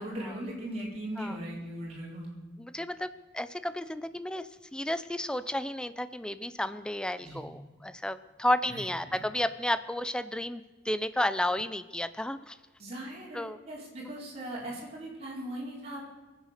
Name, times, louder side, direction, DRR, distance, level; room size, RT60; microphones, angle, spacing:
voice 1, 0.0-2.3 7.2-7.5 8.6-9.2 12.8-16.1, right 1 dB, 35° right, -4 dB, 4.2 m, -39 dB
voice 2, 2.6-3.1 3.3-12.6 13.3-13.6, left 1 dB, 5° left, 13 dB, 0.5 m, -32 dB
22.5 x 8.2 x 6.5 m, 1.2 s
head